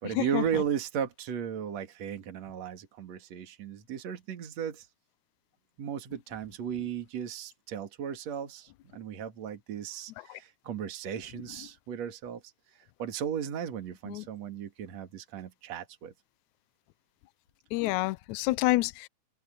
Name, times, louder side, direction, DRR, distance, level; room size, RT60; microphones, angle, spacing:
voice 1, 0.0-4.9 5.8-12.4 13.0-16.1, right 8 dB, 55° right, 3.1 m, -35 dB
voice 2, 17.7-19.1, left 19 dB, 80° left, 1.8 m, -28 dB
omnidirectional pair, 3.8 m